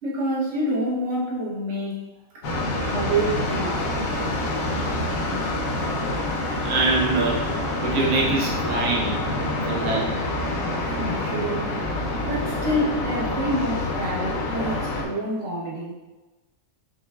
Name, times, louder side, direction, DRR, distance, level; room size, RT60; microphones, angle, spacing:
voice 1, 0.0-2.1 2.3-2.4 2.9-4.0 10.8-11.9 12.2-15.9, right 1 dB, 55° right, -5 dB, 1.3 m, -27 dB
sound 1, 2.4-15.0, left 2 dB, 70° left, 1.2 m, -27 dB
voice 2, 6.6-7.5 7.8-9.2 9.7-10.2, right 3 dB, 85° right, -3 dB, 1.2 m, -24 dB
5.4 x 3.2 x 2.3 m, 1.1 s
omnidirectional pair, 1.5 m